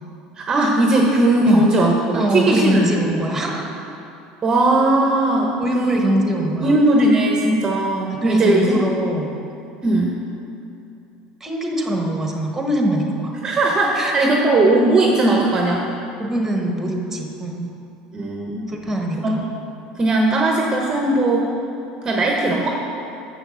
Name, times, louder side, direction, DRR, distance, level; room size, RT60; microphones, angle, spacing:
voice 1, 0.4-2.9 3.4-3.5 4.4-6.0 6.6-8.8 9.8-10.1 13.4-15.9 18.1-18.7 19.2-19.3 20.0-21.5 22.0-22.7, right 2 dB, 25° right, 0 dB, 0.9 m, -18 dB
voice 2, 2.1-3.7 5.6-6.7 8.2-9.3 11.4-13.3 14.0-14.4 16.2-17.7 18.7-19.4, right 1 dB, 10° right, 1 dB, 1.3 m, -23 dB
7.1 x 6.4 x 6.3 m, 2.7 s
supercardioid pair, 110°, 2 cm